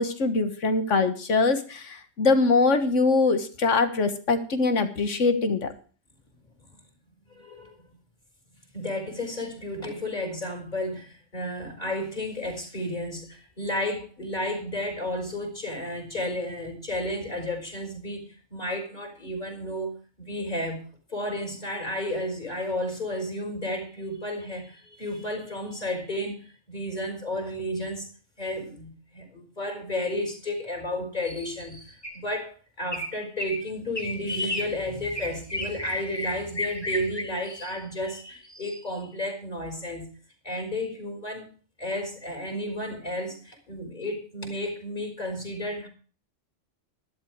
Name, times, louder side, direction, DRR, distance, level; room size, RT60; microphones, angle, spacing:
voice 1, 0.0-5.7, left 3 dB, 85° left, 9 dB, 1.8 m, -23 dB
voice 2, 7.3-7.9 8.7-19.9 20.2-20.8 21.1-28.1 28.4-40.1 40.4-41.5 41.8-45.9, left 1 dB, 35° left, 3 dB, 4.6 m, -32 dB
sound 1, 32.0-32.4 32.9-33.1 33.4-33.6 34.0-34.2 34.5-34.7 35.0-37.2, left 1 dB, 20° left, 2.0 m, -32 dB
12.5 x 11.5 x 4.7 m, 0.40 s
omnidirectional pair, 1.2 m